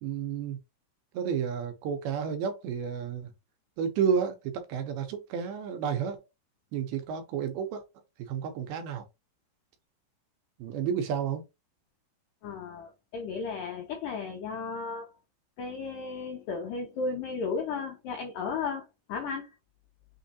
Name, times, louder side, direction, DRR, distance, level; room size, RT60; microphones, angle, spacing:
voice 1, 0.0-0.6 1.1-3.3 3.8-6.2 6.7-7.8 8.2-9.0 10.6-11.4, right 7 dB, 75° right, 2.4 m, -31 dB
voice 2, 12.4-15.2 15.6-19.6, left 4 dB, 80° left, 1.9 m, -34 dB
6.3 x 3.1 x 2.7 m
omnidirectional pair, 4.8 m